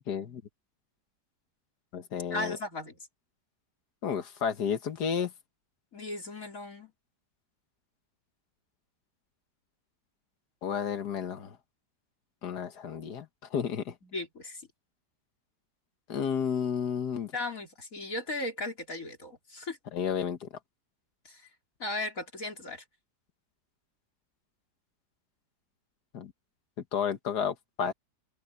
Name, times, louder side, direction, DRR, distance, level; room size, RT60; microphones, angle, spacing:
voice 1, 0.1-0.4 1.9-2.6 4.0-5.3 10.6-11.6 12.4-14.0 16.1-17.3 19.9-20.5 26.1-26.3 26.9-27.9, left 7 dB, 75° left, 1.9 m, -32 dB
voice 2, 2.3-2.9 5.9-6.9 14.0-14.6 17.3-19.8 21.3-21.4 21.8-22.8, left 2 dB, 55° left, 4.1 m, -36 dB
open air
omnidirectional pair, 1.8 m